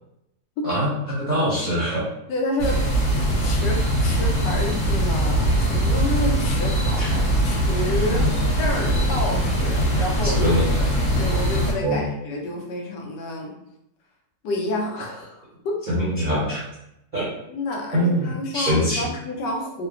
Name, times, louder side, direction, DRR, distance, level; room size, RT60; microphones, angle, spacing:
voice 1, 0.6-2.0 7.0-7.1 8.1-8.2 10.3-10.6 11.8-12.0 15.9-16.6 17.1-17.2 17.9-19.1, equal, 50° right, -10 dB, 0.5 m, -23 dB
voice 2, 2.3-2.8 3.4-8.2 8.6-10.5 10.8-10.9 11.2-13.5 14.4-15.8 17.5-19.9, left 1 dB, 80° left, 0 dB, 1.3 m, -29 dB
sound 1, 2.6-11.7, right 1 dB, 45° left, 1.1 m, -21 dB
3.1 x 2.2 x 2.3 m, 0.83 s
omnidirectional pair, 1.9 m